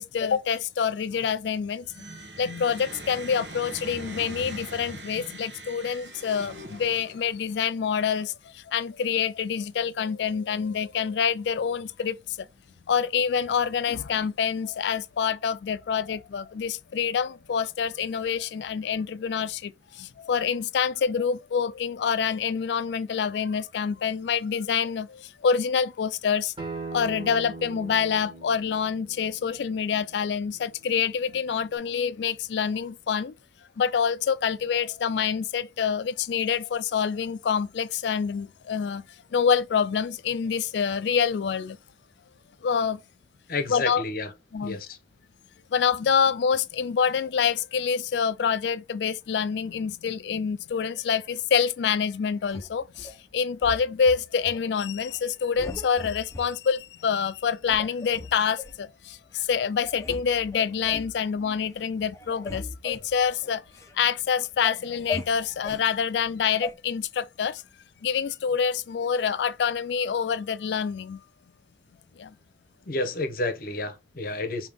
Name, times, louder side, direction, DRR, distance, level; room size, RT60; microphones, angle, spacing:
voice 1, 0.0-1.8 2.4-12.5 12.9-26.5 26.9-33.3 33.8-39.0 39.3-41.8 42.6-43.0 43.7-44.0 44.5-44.8 45.7-63.6 64.0-67.6 68.0-71.2 72.2-72.3, left 7 dB, 75° left, 0.4 m, -26 dB
sound 1, 1.8-7.5, right 2 dB, 75° right, 1.0 m, -42 dB
Acoustic guitar, 26.6-31.8, right 3 dB, 30° right, 1.4 m, -41 dB
voice 2, 43.5-44.3 44.6-45.0 72.9-74.7, left 2 dB, 55° left, 0.7 m, -30 dB
sound 2, 52.5-53.2 53.6-54.6 55.0-55.2 55.6-56.5 57.0-57.1 57.6-58.8 59.4-59.5 59.8-60.2 60.5-61.2 61.6-61.9 62.1-63.9 64.3-65.8 66.6-66.7, left 3 dB, 15° left, 0.5 m, -38 dB
5.1 x 2.8 x 3.5 m
head